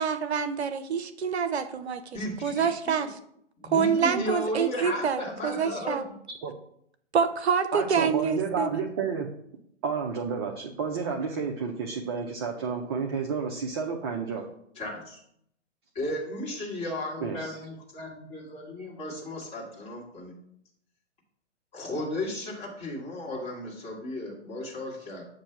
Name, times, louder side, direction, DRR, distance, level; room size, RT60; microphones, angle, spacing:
voice 1, 0.0-2.0 2.4-3.2 3.6-6.0 7.1-8.8, right 6 dB, 65° right, 10 dB, 0.6 m, -26 dB
voice 2, 2.1-2.7 3.0-3.1 3.6-6.2 14.8-15.2 15.9-20.3 21.7-25.2, left 1 dB, 15° left, -3 dB, 1.7 m, -34 dB
voice 3, 7.7-9.3 9.8-14.4 17.2-17.6, right 5 dB, 25° right, 2 dB, 0.4 m, -31 dB
7.3 x 2.7 x 5.7 m, 0.71 s
figure-of-eight pair, 120°, 35 cm